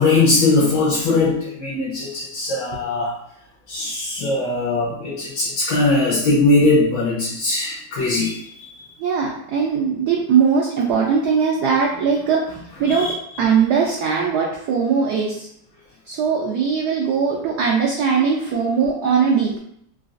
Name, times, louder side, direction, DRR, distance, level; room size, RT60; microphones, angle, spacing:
voice 1, 0.0-3.2 3.7-8.4 8.6-8.7 12.8-13.1 18.2-18.6, left 2 dB, 70° left, -4 dB, 1.3 m, -20 dB
voice 2, 9.0-12.4 12.8-13.1 13.4-15.5 16.1-19.6, right 6 dB, 80° right, -2 dB, 0.9 m, -20 dB
3.9 x 2.4 x 2.5 m, 0.70 s
omnidirectional pair, 2.3 m